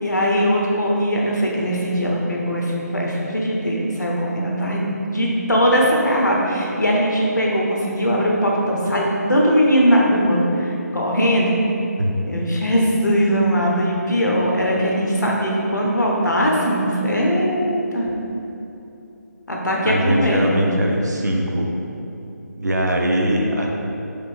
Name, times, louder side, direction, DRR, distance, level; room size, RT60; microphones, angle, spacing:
voice 1, 0.0-4.8 5.1-11.6 12.2-18.1 19.5-20.5, equal, 80° left, -2 dB, 0.9 m, -20 dB
voice 2, 19.8-21.7 22.6-23.7, equal, 75° right, 0 dB, 0.7 m, -21 dB
4.9 x 2.6 x 3.5 m, 2.7 s
figure-of-eight pair, 150°, 10 cm